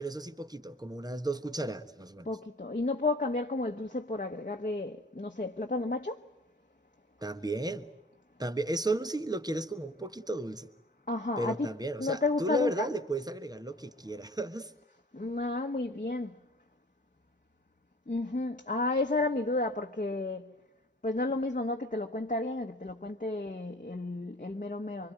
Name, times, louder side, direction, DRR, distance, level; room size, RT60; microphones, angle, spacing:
voice 1, 0.0-2.3 7.2-7.9 8.4-10.7 11.4-14.7, right 1 dB, 20° right, 1.4 m, -34 dB
voice 2, 2.2-6.2 11.1-11.7 12.0-12.9 15.1-16.4 18.1-20.5 21.0-25.1, left 2 dB, 40° left, 1.1 m, -32 dB
25.0 x 24.5 x 9.3 m
wide cardioid pair, 45°, 20 cm